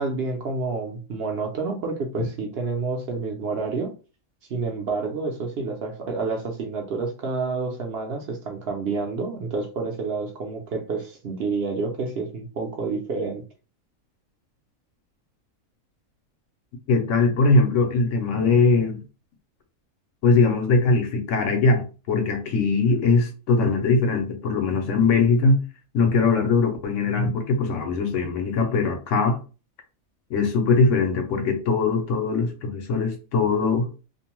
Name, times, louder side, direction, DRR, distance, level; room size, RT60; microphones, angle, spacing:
voice 1, 0.0-3.9 4.5-13.4, right 4 dB, 60° right, 0.7 m, -29 dB
voice 2, 16.9-19.0 20.2-25.6 25.9-29.4 30.3-33.9, left 3 dB, 65° left, 0.9 m, -21 dB
2.6 x 2.1 x 2.9 m
omnidirectional pair, 1.5 m